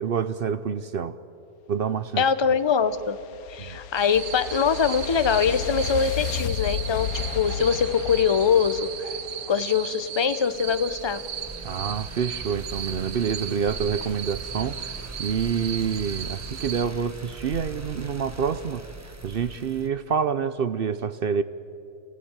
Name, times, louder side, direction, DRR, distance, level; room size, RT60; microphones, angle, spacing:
voice 1, 0.0-1.2 1.7-2.3 3.6-3.8 11.6-14.8 15.2-18.9 19.2-21.4, right 7 dB, 55° right, 13 dB, 0.6 m, -27 dB
voice 2, 2.2-3.2 3.5-9.1 9.5-11.2, left 6 dB, 30° left, 12 dB, 0.5 m, -23 dB
sound 1, 2.4-9.7, left 9 dB, 80° left, 1.2 m, -33 dB
sound 2, 4.0-16.8, right 9 dB, 75° right, 1.4 m, -36 dB
sound 3, 10.5-19.9, right 2 dB, 15° right, 0.9 m, -40 dB
30.0 x 16.5 x 8.9 m, 2.8 s
omnidirectional pair, 1.5 m